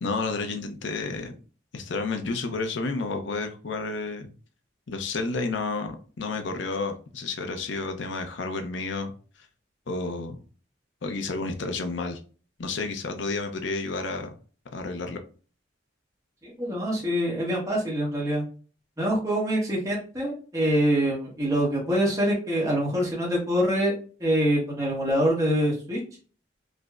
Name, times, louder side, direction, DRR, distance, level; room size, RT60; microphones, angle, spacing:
voice 1, 0.0-1.3 1.7-4.3 4.9-9.1 9.9-10.4 11.0-12.2 12.6-14.3 14.7-15.2, left 3 dB, 75° left, 6 dB, 0.6 m, -31 dB
voice 2, 16.4-18.4 19.0-23.9 24.2-26.0, equal, 15° right, -3 dB, 1.0 m, -25 dB
4.9 x 2.0 x 2.4 m, 0.39 s
head